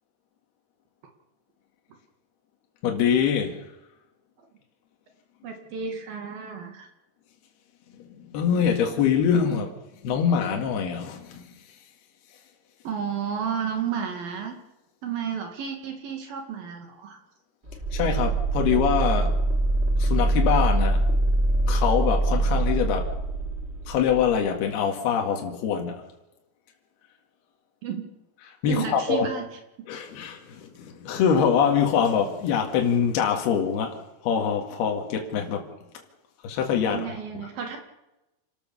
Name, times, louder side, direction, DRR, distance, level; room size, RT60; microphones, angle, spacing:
voice 1, 2.8-3.6 8.0-9.7 10.0-11.5 17.9-19.3 20.0-21.0 21.7-23.1 23.9-26.0 28.6-29.3 29.9-34.0 34.2-35.7 36.4-37.1, left 7 dB, 65° left, 2 dB, 4.0 m, -24 dB
voice 2, 5.4-6.9 9.4-9.7 12.8-14.6 15.0-17.2 27.8-28.1 28.7-29.5 36.8-37.8, right 7 dB, 60° right, 4 dB, 3.8 m, -32 dB
sound 1, 17.7-24.3, right 2 dB, 35° right, 1.0 m, -24 dB
28.5 x 13.0 x 7.0 m, 0.95 s
omnidirectional pair, 5.0 m